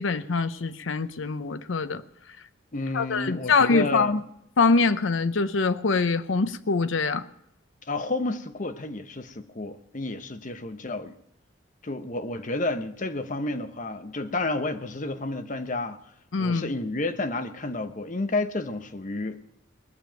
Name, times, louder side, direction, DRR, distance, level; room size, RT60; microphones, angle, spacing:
voice 1, 0.0-2.0 2.9-4.2 4.6-7.2 16.3-16.7, left 4 dB, 85° left, 0.7 m, -24 dB
voice 2, 2.7-4.1 7.9-11.2 11.8-16.0 16.4-19.4, left 2 dB, 40° left, 0.9 m, -31 dB
20.5 x 7.1 x 9.1 m
head